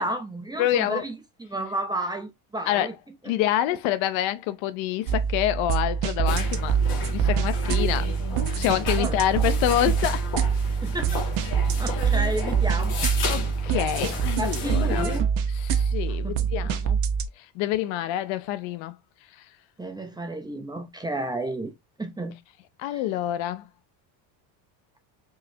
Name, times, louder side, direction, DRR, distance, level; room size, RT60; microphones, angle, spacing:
voice 1, 0.0-2.9 3.2-3.3 9.0-9.2 10.7-11.3 11.8-13.0 13.7-13.8 14.4-15.3 16.2-16.5 19.8-21.7 22.0-22.4 22.9-23.0, right 1 dB, 10° right, 0.6 m, -32 dB
voice 2, 0.6-1.0 2.7-2.9 3.3-6.8 7.1-8.1 8.5-10.2 11.9-12.0 13.3-15.1 15.6-17.0 17.4-18.9 22.8-23.7, left 13 dB, 70° left, 0.7 m, -27 dB
sound 1, 5.1-17.3, right 7 dB, 60° right, 1.0 m, -25 dB
sound 2, 6.3-15.2, left 4 dB, 50° left, 1.8 m, -33 dB
4.7 x 3.1 x 2.7 m
cardioid pair, 135°, 48 cm